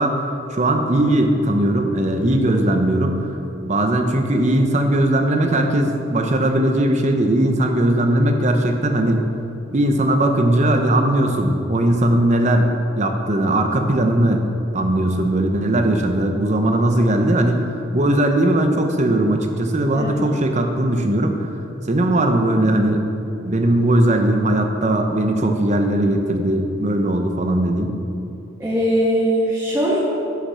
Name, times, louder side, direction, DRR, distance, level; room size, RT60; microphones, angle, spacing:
voice 1, 0.0-3.3 3.6-9.3 9.7-14.4 14.7-17.7 17.9-21.5 21.9-23.0 23.4-27.9, right 1 dB, 35° right, 4 dB, 0.8 m, -19 dB
voice 2, 28.6-30.0, equal, 15° right, -7 dB, 1.3 m, -20 dB
10.0 x 5.9 x 6.2 m, 2.8 s
head